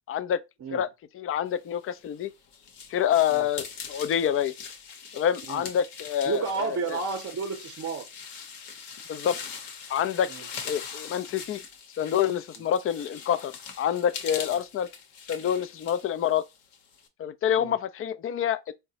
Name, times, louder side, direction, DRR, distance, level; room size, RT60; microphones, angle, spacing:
voice 1, 0.1-0.4 0.7-0.9 1.1-2.3 2.9-4.5 5.1-7.0 9.1-9.4 9.9-10.3 10.6-11.6 12.0-14.9 15.3-16.4 17.2-18.7, left 9 dB, 35° left, 0.4 m, -27 dB
sound 1, 1.9-17.1, left 6 dB, 70° left, 0.9 m, -42 dB
voice 2, 6.3-8.1 10.3-10.5 12.6-12.7 17.6-17.8, right 5 dB, 35° right, 0.7 m, -31 dB
3.8 x 2.2 x 2.8 m
supercardioid pair, 70°, 40 cm